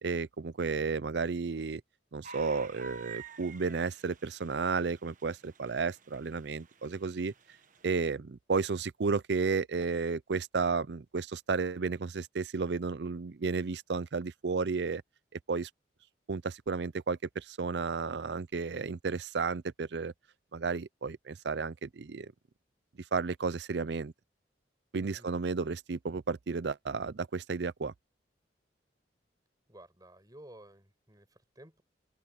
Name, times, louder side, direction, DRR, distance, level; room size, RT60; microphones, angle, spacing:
voice 1, 0.0-1.8 2.1-7.3 7.8-15.0 15.5-15.7 16.3-20.1 20.5-22.3 23.1-24.1 24.9-27.9, right 4 dB, 65° right, 0.5 m, -32 dB
sound 1, 2.2-7.9, right 5 dB, 45° right, 1.5 m, -51 dB
voice 2, 29.7-31.8, right 1 dB, 20° right, 6.9 m, -54 dB
open air
head